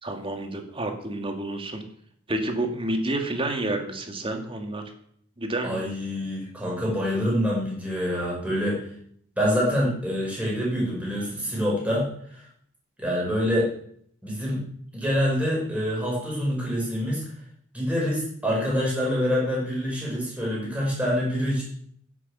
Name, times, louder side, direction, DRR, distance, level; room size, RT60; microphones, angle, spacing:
voice 1, 0.0-1.8 2.3-4.8 5.4-5.8, right 1 dB, 25° right, 4 dB, 1.9 m, -29 dB
voice 2, 5.6-8.9 9.4-12.5 13.0-13.7 14.2-14.6 14.9-17.2 17.7-21.6, equal, 5° right, -4 dB, 5.7 m, -26 dB
10.5 x 8.4 x 7.3 m, 0.63 s
head